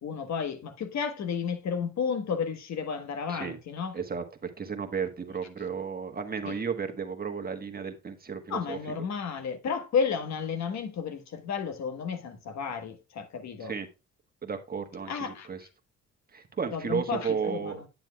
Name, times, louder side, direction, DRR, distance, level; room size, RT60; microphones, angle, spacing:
voice 1, 0.0-3.9 6.4-6.6 8.5-13.7 15.1-15.5 16.7-17.9, left 6 dB, 65° left, 1.4 m, -32 dB
voice 2, 3.9-8.8 13.6-13.9 14.4-15.6 16.3-17.8, right 6 dB, 30° right, 1.3 m, -33 dB
9.1 x 7.6 x 2.3 m
cardioid pair, 90°, 30 cm